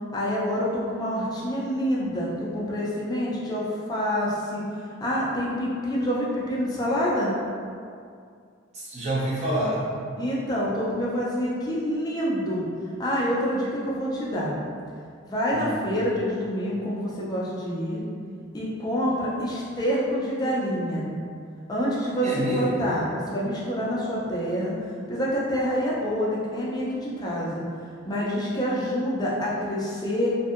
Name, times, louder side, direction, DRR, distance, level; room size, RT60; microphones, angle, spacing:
voice 1, 0.1-4.6 5.0-7.3 10.2-12.6 13.0-14.5 15.3-18.0 18.5-21.1 21.7-24.7 25.1-27.6 28.0-30.3, equal, 20° left, -6 dB, 0.4 m, -27 dB
voice 2, 8.7-9.9 15.5-15.8 22.2-22.8, right 1 dB, 35° right, -7 dB, 0.6 m, -27 dB
2.6 x 2.5 x 2.4 m, 2.3 s
head